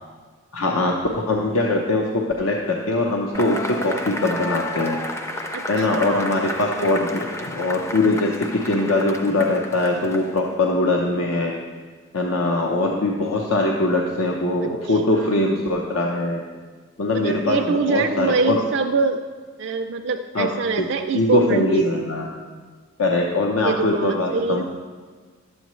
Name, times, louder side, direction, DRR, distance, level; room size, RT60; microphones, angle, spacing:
voice 1, 0.5-0.9 1.3-5.0 5.3-5.4 5.7-11.5 12.1-16.4 17.0-18.6 20.3-20.5 20.8-20.9 21.1-22.3 23.0-24.6, left 2 dB, 85° left, 0 dB, 0.8 m, -22 dB
Cheering / Applause / Crowd, 3.3-10.6, left 1 dB, 15° left, 0.4 m, -32 dB
voice 2, 5.5-6.4 14.8-15.5 17.1-19.2 19.6-21.9 23.6-24.6, right 4 dB, 55° right, 3 dB, 0.3 m, -24 dB
11.5 x 7.9 x 3.1 m, 1.5 s
head